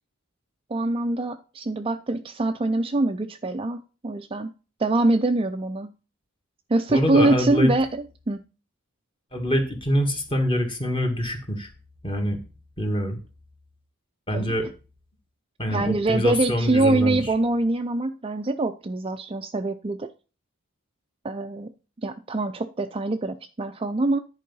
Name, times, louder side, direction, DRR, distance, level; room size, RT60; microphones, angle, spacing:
voice 1, 0.7-4.5 4.8-5.9 6.7-8.4 14.3-14.7 15.7-20.1 21.2-21.7 22.0-24.2, right 2 dB, 25° right, 7 dB, 0.4 m, -24 dB
voice 2, 6.9-7.7 9.3-11.7 12.0-12.4 12.8-13.2 14.3-14.6 15.6-17.2, equal, 25° left, 3 dB, 1.8 m, -25 dB
10.5 x 4.7 x 5.5 m, 0.33 s
head